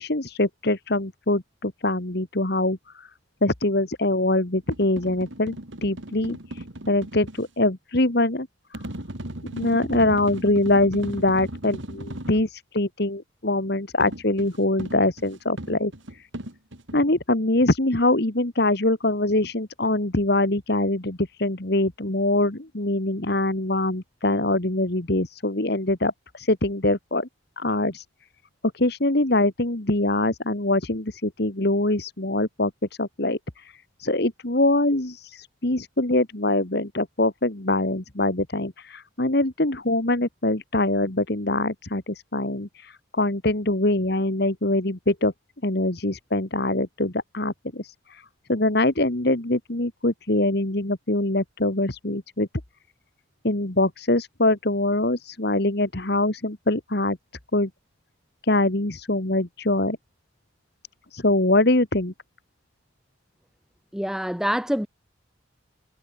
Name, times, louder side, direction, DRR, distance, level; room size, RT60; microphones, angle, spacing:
voice 1, 0.0-3.1 3.4-5.6 5.8-8.5 8.7-8.8 9.5-16.3 16.9-27.3 27.6-28.1 28.7-32.7 33.0-45.3 45.6-48.2 48.5-52.5 53.4-57.2 57.5-57.7 58.4-60.0 61.1-62.1, left 2 dB, 55° left, 1.9 m, -23 dB
sound 1, 4.6-7.5 8.7-12.5 14.0-17.0, right 1 dB, 70° right, 3.4 m, -37 dB
voice 2, 63.9-64.9, equal, 5° right, 0.9 m, -25 dB
head